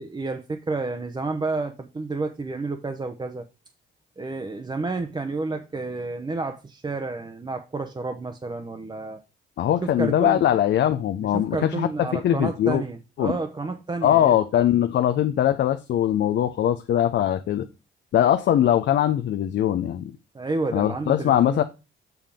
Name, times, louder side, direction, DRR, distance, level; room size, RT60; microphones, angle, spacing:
voice 1, 0.0-3.4 4.2-9.2 9.8-10.4 11.3-14.3 20.3-21.6, right 3 dB, 20° right, 0.7 m, -30 dB
voice 2, 9.6-12.8 13.2-13.3 14.0-17.7 18.1-20.1 20.7-21.6, left 11 dB, 65° left, 0.6 m, -21 dB
7.0 x 5.7 x 3.5 m
cardioid pair, 90°, 20 cm